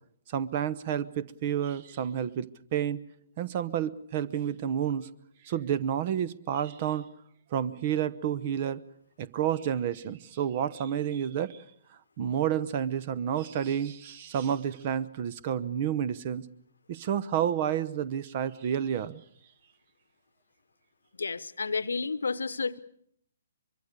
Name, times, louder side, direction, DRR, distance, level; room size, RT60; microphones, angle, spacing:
voice 1, 0.3-3.0 3.4-5.1 5.4-7.1 7.5-8.8 9.2-11.6 12.2-16.4 16.9-19.2, right 9 dB, 35° right, 16 dB, 0.9 m, -30 dB
voice 2, 21.2-22.8, left 4 dB, 65° left, 16 dB, 1.0 m, -31 dB
24.0 x 23.5 x 6.7 m, 0.66 s
figure-of-eight pair, 130°, 0 cm